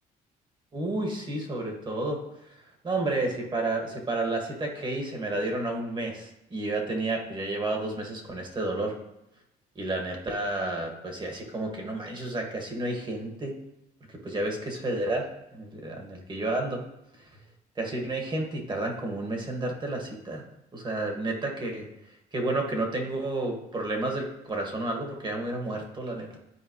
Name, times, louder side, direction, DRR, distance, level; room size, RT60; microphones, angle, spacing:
voice 1, 0.7-2.2 2.5-2.6 2.8-9.0 9.8-13.5 14.1-16.8 17.2-17.3 17.8-20.4 20.7-21.9 22.3-26.4, right 2 dB, 25° right, 1 dB, 1.9 m, -31 dB
13.0 x 4.6 x 3.2 m, 0.86 s
cardioid pair, 110°, 17 cm